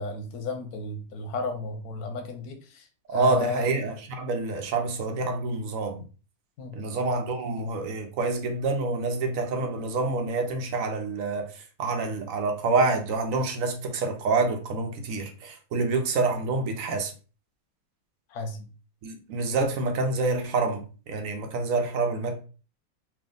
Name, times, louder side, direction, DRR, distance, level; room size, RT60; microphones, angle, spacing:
voice 1, 0.0-2.9 3.1-3.6 6.6-6.8 18.3-18.7, left 3 dB, 85° left, 1.3 m, -33 dB
voice 2, 3.1-6.0 6.7-17.1 19.0-22.4, right 3 dB, 65° right, 1.0 m, -27 dB
3.4 x 2.6 x 3.6 m
omnidirectional pair, 1.6 m